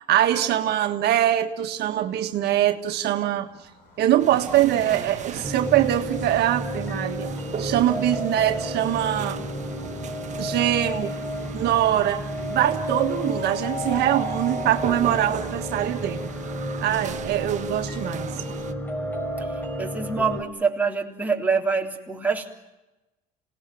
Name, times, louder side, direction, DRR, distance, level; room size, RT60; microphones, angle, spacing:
voice 1, 0.1-3.5 4.0-7.3 7.6-9.4 10.4-11.1 11.5-16.3 16.8-18.3, right 12 dB, 75° right, 6 dB, 1.7 m, -23 dB
Train, 1.5-14.8 15.1-15.2, left 2 dB, 75° left, 7.9 m, -50 dB
sound 1, 4.2-18.7, right 8 dB, 45° right, 1.4 m, -38 dB
sound 2, 5.4-20.4, equal, 10° left, 4.3 m, -31 dB
voice 2, 19.8-22.5, right 5 dB, 10° right, 0 dB, 3.5 m, -25 dB
27.0 x 18.5 x 9.3 m, 1.0 s
cardioid pair, 110°, 17 cm